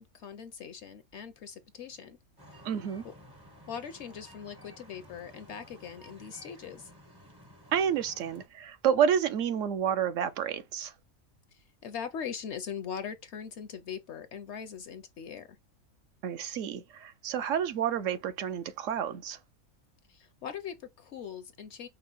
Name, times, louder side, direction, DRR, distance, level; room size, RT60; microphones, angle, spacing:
voice 1, 0.0-2.2 2.5-2.6 3.0-3.1 3.7-6.9 11.5-15.6 20.1-21.9, left 7 dB, 65° left, 0.7 m, -41 dB
sound 1, 2.4-8.5, equal, 25° right, 0.5 m, -53 dB
voice 2, 2.6-3.0 7.7-10.9 16.2-19.4, right 8 dB, 70° right, 0.9 m, -29 dB
5.4 x 2.0 x 3.8 m
omnidirectional pair, 1.5 m